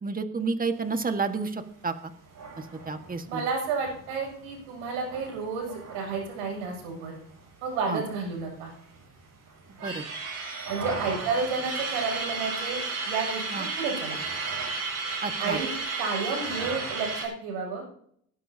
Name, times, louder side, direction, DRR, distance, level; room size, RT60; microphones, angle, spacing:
voice 1, 0.0-2.1 2.9-3.4 7.9-8.0 9.7-10.0 13.5-13.7 15.2-15.6, right 4 dB, 20° right, 7 dB, 1.7 m, -30 dB
sound 1, 2.3-7.4 7.7-7.8 8.1-9.0 9.5-17.3, right 4 dB, 50° right, 7.6 m, -34 dB
voice 2, 3.3-7.1 7.6-8.7 10.7-12.8 13.1-14.2 15.4-15.7 16.0-17.8, right 4 dB, 80° right, 1 dB, 7.1 m, -31 dB
22.0 x 12.0 x 2.8 m, 0.64 s
supercardioid pair, 80°, 42 cm